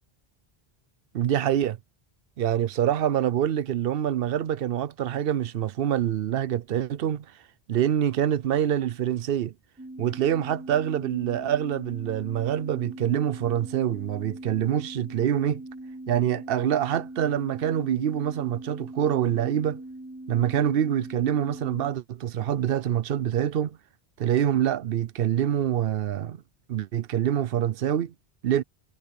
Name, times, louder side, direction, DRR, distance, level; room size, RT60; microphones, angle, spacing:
voice 1, 1.1-1.8 2.4-7.2 7.7-9.5 10.0-15.6 16.1-19.8 20.3-23.8 24.2-26.4 26.7-28.1 28.4-28.6, right 10 dB, 70° right, 0.8 m, -25 dB
sound 1, 9.8-21.9, right 1 dB, 10° right, 3.4 m, -41 dB
omnidirectional pair, 1.0 m